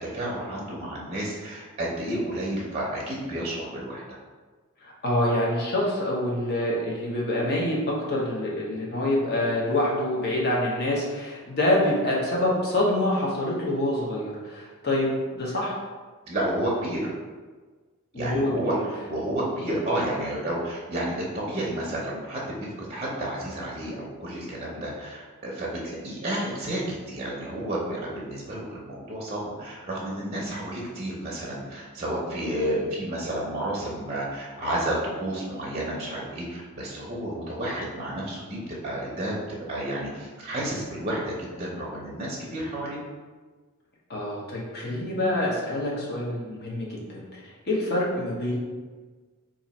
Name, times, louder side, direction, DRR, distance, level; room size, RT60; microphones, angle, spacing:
voice 1, 0.0-4.0 16.3-17.1 18.2-18.7 19.0-38.6 38.8-43.0, right 1 dB, 25° right, -4 dB, 0.6 m, -31 dB
voice 2, 4.8-15.8 18.1-18.8 44.1-48.6, left 1 dB, 45° left, -4 dB, 0.9 m, -26 dB
2.9 x 2.5 x 4.1 m, 1.4 s
head